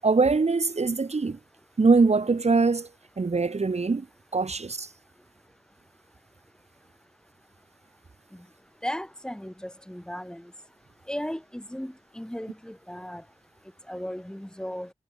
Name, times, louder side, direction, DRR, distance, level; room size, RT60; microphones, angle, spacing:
voice 1, 0.0-1.4 1.8-2.9 3.2-4.1 4.3-4.9, right 4 dB, 60° right, 2.3 m, -22 dB
voice 2, 8.8-10.5 11.1-13.2 13.9-14.9, equal, 5° left, 4.3 m, -36 dB
wide cardioid pair, 70°, 12 cm